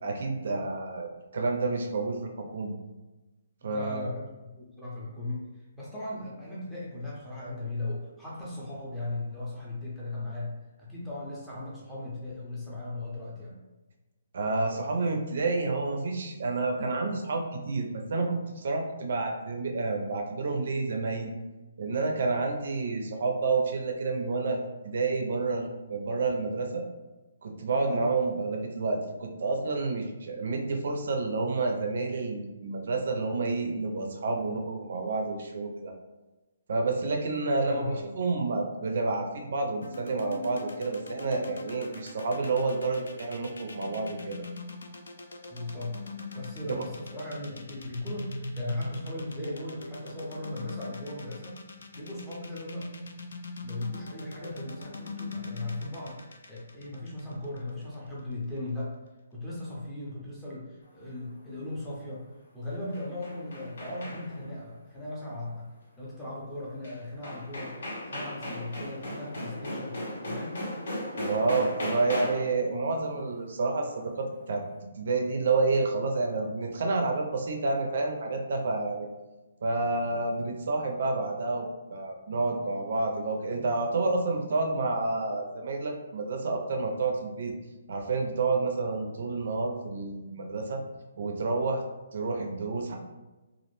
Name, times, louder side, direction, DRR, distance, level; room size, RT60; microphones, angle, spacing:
voice 1, 0.0-2.7 3.6-4.0 14.3-21.3 21.8-26.8 27.4-35.9 36.7-44.4 46.7-46.8 71.2-74.6 75.0-79.1 79.6-87.5 87.9-90.8 91.2-91.8 92.1-93.0, right 3 dB, 55° right, 3 dB, 0.4 m, -29 dB
voice 2, 3.6-4.2 4.6-10.5 10.8-13.6 27.8-28.1 37.6-38.0 45.5-45.9 46.3-51.6 51.9-53.0 53.6-58.9 59.3-62.3 62.5-65.7 66.0-67.8 68.0-70.7, left 2 dB, 5° left, -8 dB, 0.5 m, -37 dB
sound 1, 39.8-57.9, left 3 dB, 85° left, 0.3 m, -41 dB
sound 2, 62.7-64.5 66.8-66.9 67.2-72.6, left 1 dB, 65° left, 0.8 m, -36 dB
2.4 x 2.0 x 3.0 m, 1.1 s
hypercardioid pair, 170°, 0 cm